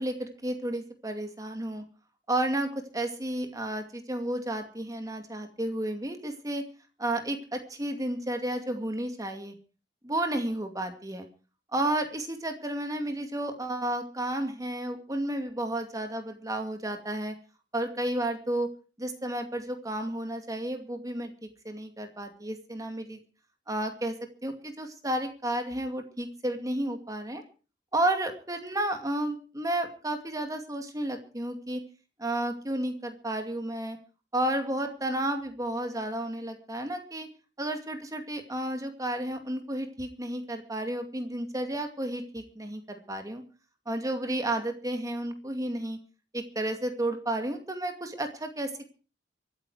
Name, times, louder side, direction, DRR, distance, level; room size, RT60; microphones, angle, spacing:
voice 1, 0.0-1.8 2.3-6.6 7.0-9.5 10.0-11.3 11.7-17.3 17.7-18.7 19.0-23.2 23.7-24.1 24.4-27.4 27.9-31.8 32.2-34.0 34.3-37.3 37.6-43.4 43.9-46.0 46.3-48.9, right 1 dB, 20° right, 5 dB, 2.3 m, -32 dB
24.0 x 9.3 x 4.9 m, 0.37 s
head